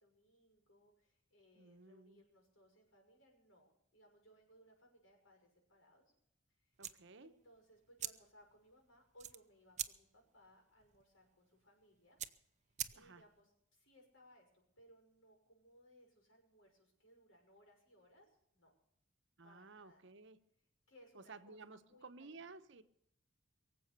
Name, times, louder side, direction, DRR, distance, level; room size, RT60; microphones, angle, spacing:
voice 1, 0.0-6.1 6.5-6.8 7.2-12.2 12.6-18.7 19.4-20.1 20.9-22.5, equal, 85° left, 6.2 m, -66 dB
voice 2, 1.6-2.2 6.8-7.3 13.0-13.2 19.4-20.4 21.1-22.8, right 3 dB, 65° right, 1.0 m, -55 dB
sound 1, 6.7-13.4, right 11 dB, 35° right, 0.7 m, -48 dB
23.0 x 7.8 x 6.8 m
head